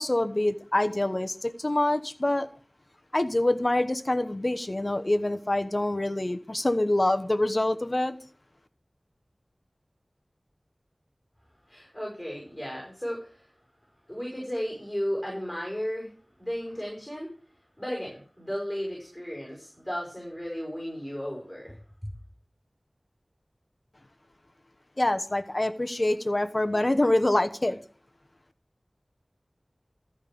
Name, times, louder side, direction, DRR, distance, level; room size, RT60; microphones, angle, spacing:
voice 1, 0.0-2.5 3.1-8.2 25.0-27.8, left 1 dB, 40° left, 9 dB, 1.0 m, -25 dB
voice 2, 11.7-13.5 14.1-16.1 16.4-17.3 17.8-22.1, equal, 10° left, -2 dB, 5.8 m, -34 dB
14.0 x 5.4 x 6.9 m, 0.44 s
wide cardioid pair, 50°, 0 cm